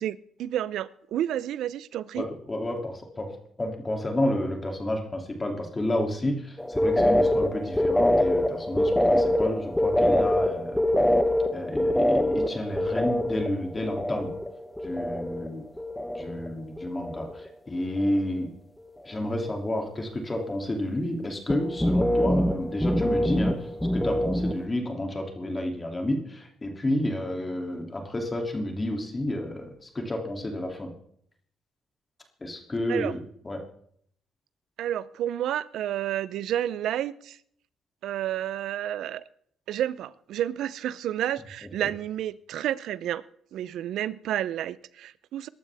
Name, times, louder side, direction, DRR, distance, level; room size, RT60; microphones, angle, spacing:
voice 1, 0.0-2.2 32.9-33.1 34.8-37.4 38.0-39.2 39.7-43.2 43.5-45.5, right 11 dB, 80° right, 0.6 m, -30 dB
voice 2, 2.1-10.8 11.5-14.3 14.8-15.6 16.1-18.5 19.0-23.6 23.9-30.9 32.4-33.6, left 1 dB, 25° left, 2.7 m, -30 dB
sound 1, 6.6-15.5 15.8-16.5 16.8-17.5 17.8-18.2 21.5-24.7, left 1 dB, 5° left, 1.1 m, -25 dB
22.0 x 12.0 x 3.5 m
cardioid pair, 90°, 0 cm